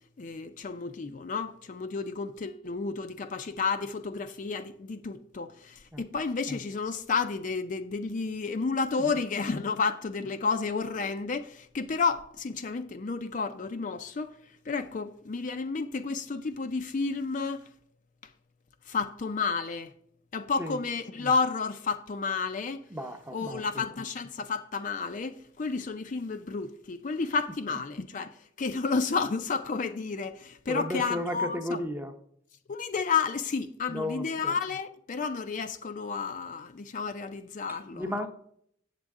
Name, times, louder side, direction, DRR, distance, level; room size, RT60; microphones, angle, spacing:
voice 1, 0.2-17.7 18.9-19.9 20.3-22.8 23.3-31.8 32.7-38.3, left 4 dB, 40° left, 0.4 m, -31 dB
voice 2, 22.9-23.6 30.7-32.1 33.9-34.5 37.7-38.3, left 1 dB, 10° right, 0.7 m, -34 dB
8.0 x 7.5 x 3.6 m
head